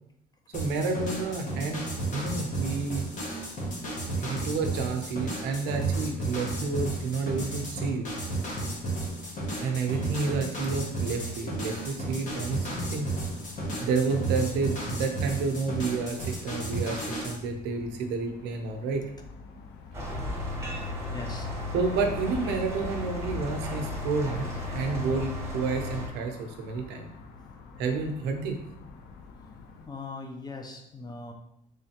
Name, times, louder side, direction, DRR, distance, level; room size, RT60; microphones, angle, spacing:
sound 1, 0.5-17.4, right 2 dB, 50° left, 1.2 m, -33 dB
voice 1, 0.5-3.0 4.2-8.1 9.6-13.1 13.8-19.0 21.7-27.1 27.8-28.6, right 4 dB, 90° right, 5 dB, 0.6 m, -30 dB
sound 2, 12.5-29.9, left 3 dB, 75° left, 0.5 m, -45 dB
sound 3, 19.9-26.1, left 2 dB, 15° right, 1.0 m, -35 dB
voice 2, 21.1-21.5 29.9-31.3, left 3 dB, 25° left, 4 dB, 0.6 m, -40 dB
3.6 x 3.2 x 2.8 m, 0.76 s
cardioid pair, 110°, 17 cm